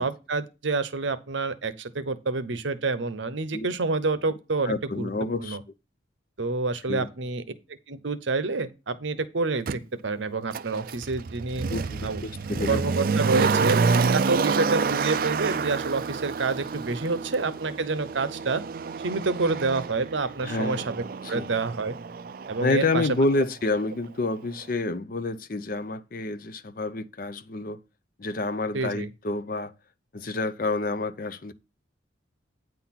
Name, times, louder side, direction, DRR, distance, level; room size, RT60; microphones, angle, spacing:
voice 1, 0.0-5.1 5.4-5.6 6.4-7.4 7.9-11.7 12.0-12.2 12.7-13.8 14.1-18.6 19.0-21.9 22.5-23.1 28.7-29.1, right 3 dB, 75° right, 0.8 m, -28 dB
voice 2, 4.6-5.6 6.9-7.1 11.7-12.8 20.4-20.8 21.2-21.5 22.6-27.8 28.2-29.7 30.1-31.5, left 2 dB, 45° left, 0.6 m, -28 dB
Motor vehicle (road), 9.7-9.8 10.5-23.4 23.7-23.8, right 5 dB, 45° right, 0.4 m, -28 dB
9.0 x 4.0 x 5.8 m
head